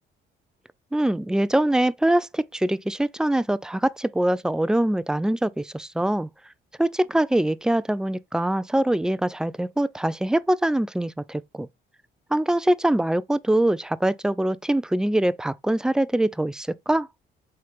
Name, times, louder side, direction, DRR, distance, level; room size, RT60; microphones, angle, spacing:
voice 1, 0.9-6.3 6.8-11.7 12.3-17.1, right 1 dB, 5° right, 0.3 m, -23 dB
4.4 x 2.9 x 3.2 m
cardioid pair, 90°, 20 cm